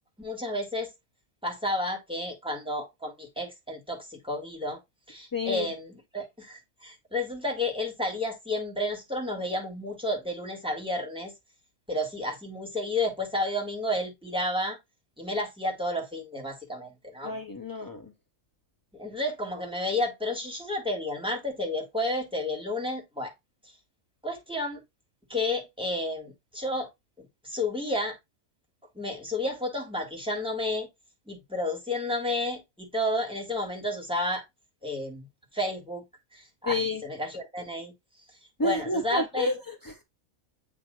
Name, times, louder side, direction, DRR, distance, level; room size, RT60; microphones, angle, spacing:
voice 1, 0.2-0.9 1.4-4.8 5.1-11.3 11.9-14.8 15.2-17.3 18.9-23.3 24.2-24.8 25.3-26.9 27.2-28.2 28.9-30.9 31.3-34.4 34.8-35.3 35.5-36.0 36.3-37.9 38.6-39.5, left 1 dB, 5° right, 1.7 m, -31 dB
voice 2, 5.3-5.7 17.2-18.1 36.6-37.0 38.6-40.0, left 2 dB, 35° left, 0.3 m, -30 dB
8.4 x 2.9 x 3.9 m
omnidirectional pair, 1.4 m